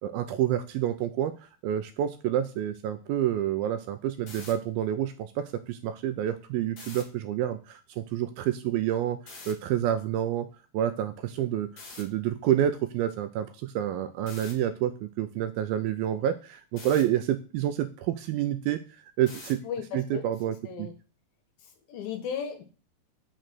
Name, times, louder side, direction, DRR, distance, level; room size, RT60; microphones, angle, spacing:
voice 1, 0.0-1.3 1.6-9.2 9.5-10.5 10.7-11.7 12.0-18.8 19.2-19.6 19.9-20.9, right 11 dB, 80° right, 9 dB, 2.3 m, -28 dB
sound 1, 4.1-4.5 6.7-7.0 9.2-9.5 11.8-12.0 14.3-14.5 16.8-17.0 19.3-19.6, left 3 dB, 35° left, 1.6 m, -44 dB
voice 2, 19.6-20.9 21.6-22.6, left 7 dB, 70° left, 6 dB, 2.8 m, -36 dB
6.5 x 6.4 x 6.2 m, 0.36 s
omnidirectional pair, 4.7 m